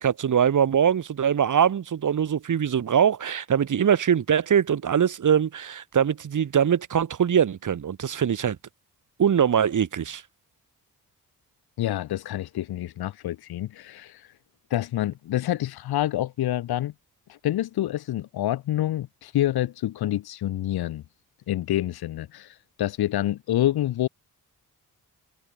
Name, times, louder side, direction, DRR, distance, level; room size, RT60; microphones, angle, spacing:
voice 1, 0.0-8.6 9.2-10.2, right 8 dB, 55° right, 1.3 m, -22 dB
voice 2, 11.8-14.3 14.7-16.9 17.3-21.0 21.5-24.1, left 13 dB, 90° left, 1.2 m, -27 dB
cardioid pair, 60°, 36 cm